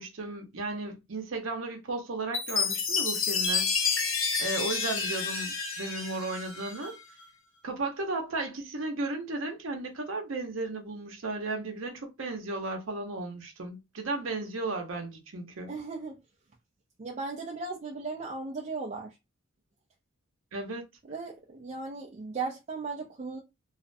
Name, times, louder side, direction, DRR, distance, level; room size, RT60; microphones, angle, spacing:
voice 1, 0.0-3.7 4.4-7.0 7.6-15.7 20.5-20.8, right 2 dB, 65° right, 0.7 m, -35 dB
Chime, 2.3-6.9, left 5 dB, 70° left, 0.8 m, -29 dB
voice 2, 15.7-16.2 17.0-19.1 21.1-23.4, right 4 dB, 35° right, 0.4 m, -36 dB
2.4 x 2.1 x 2.5 m
head